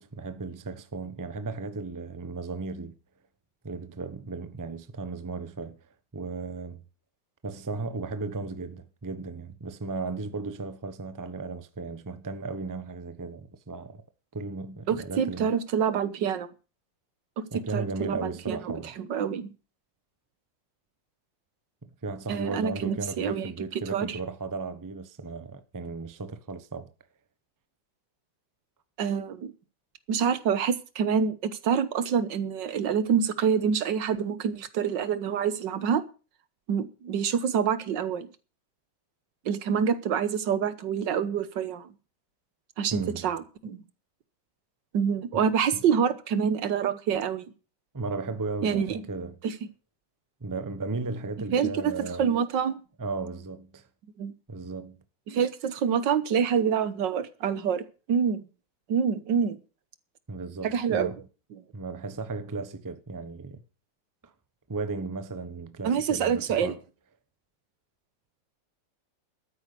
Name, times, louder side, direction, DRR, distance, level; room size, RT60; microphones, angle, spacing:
voice 1, 0.0-2.9 3.6-5.8 6.1-6.8 7.4-14.0 14.3-15.5 17.5-19.0 21.8-26.9 42.9-43.2 45.3-45.4 45.7-45.8 47.9-49.4 50.4-52.3 53.0-53.9 54.5-55.0 60.3-61.2 61.7-63.6 64.2-64.3 64.7-66.8, right 3 dB, 15° right, 0.6 m, -35 dB
voice 2, 14.9-16.5 17.4-17.5 17.7-19.5 22.3-23.5 23.9-24.2 29.0-29.5 30.1-36.0 36.7-38.3 39.4-41.9 42.8-43.8 44.9-47.4 48.6-49.0 49.4-49.5 51.5-52.8 54.2-54.3 55.3-58.4 58.9-59.6 60.6-61.1 65.8-66.7, right 7 dB, 75° right, 1.7 m, -26 dB
13.0 x 9.4 x 6.8 m
omnidirectional pair, 2.0 m